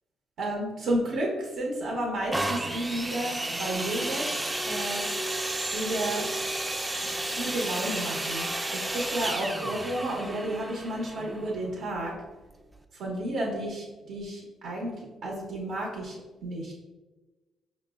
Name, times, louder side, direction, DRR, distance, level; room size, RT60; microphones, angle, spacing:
voice 1, 0.4-4.4 4.6-5.1 5.7-6.3 7.0-12.1 12.9-16.7, right 1 dB, 75° right, -2 dB, 0.8 m, -32 dB
sound 1, 2.3-12.0 12.7-12.8, right 1 dB, 15° right, 0.4 m, -32 dB
5.3 x 2.1 x 3.4 m, 1.2 s
cardioid pair, 90°, 0 cm